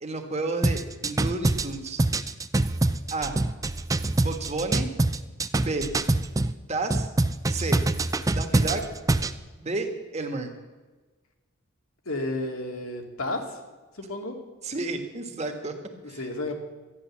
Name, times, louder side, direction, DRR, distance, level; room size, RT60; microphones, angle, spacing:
voice 1, 0.0-2.0 3.1-3.3 4.2-4.9 5.5-5.9 6.7-7.1 7.5-7.8 8.3-8.8 9.6-10.5 14.6-15.7 16.1-16.2, right 3 dB, 30° right, 5 dB, 1.5 m, -31 dB
sound 1, 0.6-6.5 6.9-9.4, right 2 dB, 15° right, 0.4 m, -24 dB
voice 2, 12.1-13.4 14.0-14.3 16.2-16.5, left 2 dB, 85° left, 2 dB, 2.3 m, -31 dB
13.0 x 9.8 x 7.3 m, 1.3 s
head